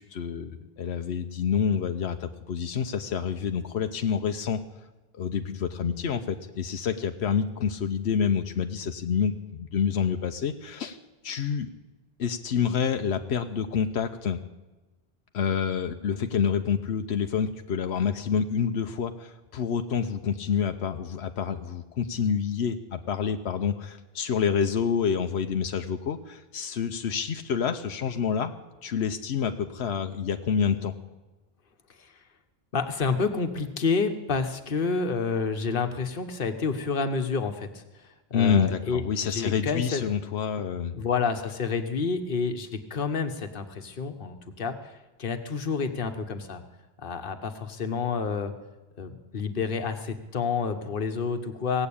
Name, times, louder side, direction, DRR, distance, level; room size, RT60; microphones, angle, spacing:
voice 1, 0.0-4.6 5.1-11.0 11.2-11.7 12.2-14.4 15.3-28.5 28.8-30.9 38.3-40.9, left 7 dB, 90° left, 7 dB, 1.0 m, -28 dB
voice 2, 32.7-40.1 40.9-46.6 47.0-48.5 49.0-51.9, left 5 dB, 60° left, 7 dB, 1.3 m, -29 dB
18.0 x 8.0 x 8.5 m, 1.1 s
omnidirectional pair, 1.1 m